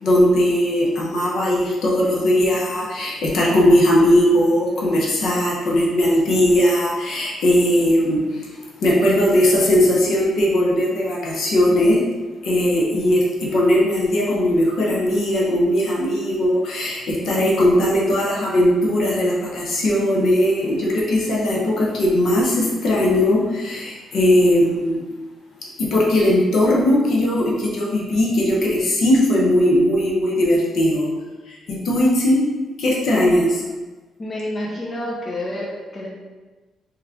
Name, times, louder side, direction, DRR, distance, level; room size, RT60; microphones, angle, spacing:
voice 1, 0.0-12.0 12.4-25.0 25.8-31.1 31.5-32.4 32.8-33.6, left 1 dB, 65° left, -4 dB, 1.1 m, -18 dB
voice 2, 34.2-36.1, left 1 dB, 30° left, -4 dB, 0.7 m, -28 dB
3.6 x 3.1 x 3.6 m, 1.2 s
cardioid pair, 105°, 0 cm